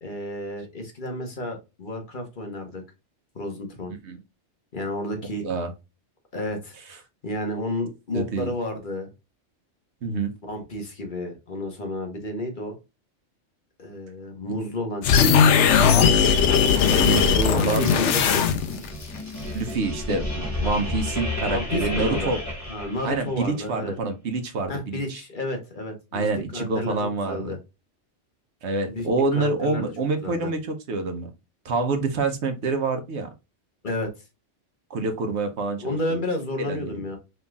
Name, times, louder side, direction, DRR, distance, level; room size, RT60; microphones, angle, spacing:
voice 1, 0.0-2.8 3.3-3.9 4.7-5.5 6.3-6.8 7.2-9.1 10.4-12.7 13.8-15.3 17.5-18.4 21.5-22.3 22.7-23.9 24.7-27.6 28.9-29.1 29.3-29.8 30.2-30.5 33.8-34.2 35.8-37.2, left 1 dB, 45° left, 3 dB, 1.2 m, -31 dB
voice 2, 8.1-8.5 10.0-10.3 17.0-17.9 19.5-22.4 23.0-25.2 26.1-27.6 28.6-31.3 31.6-33.3 34.9-36.0 36.6-37.0, right 3 dB, 70° right, 6 dB, 1.1 m, -27 dB
sound 1, 15.0-18.9, left 6 dB, 75° left, 0.9 m, -18 dB
sound 2, 17.8-23.5, left 1 dB, 15° left, 1.3 m, -31 dB
5.4 x 3.4 x 2.3 m, 0.26 s
omnidirectional pair, 1.2 m